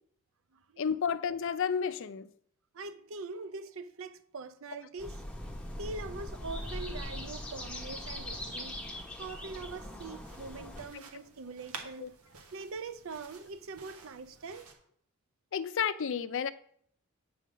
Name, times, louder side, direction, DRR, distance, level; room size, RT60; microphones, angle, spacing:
voice 1, 0.8-2.3 10.9-11.0 12.0-12.1 15.5-16.5, left 7 dB, 60° left, 0.4 m, -31 dB
voice 2, 2.7-5.2 5.8-8.8 9.2-12.1 12.5-14.7, right 3 dB, 60° right, 0.6 m, -43 dB
sound 1, 5.0-10.9, left 1 dB, 5° left, 1.1 m, -41 dB
sound 2, 9.8-14.7, right 4 dB, 80° right, 1.3 m, -51 dB
8.4 x 3.9 x 6.3 m
head